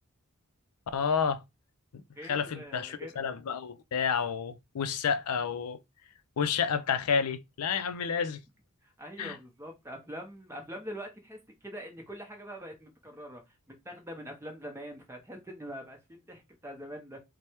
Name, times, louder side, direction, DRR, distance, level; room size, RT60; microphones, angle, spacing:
voice 1, 0.9-1.4 2.2-5.8 6.4-8.4 9.2-9.4, left 6 dB, 85° left, 0.5 m, -30 dB
voice 2, 2.2-3.2 8.8-17.2, equal, 10° right, 0.8 m, -44 dB
3.2 x 2.2 x 4.3 m
head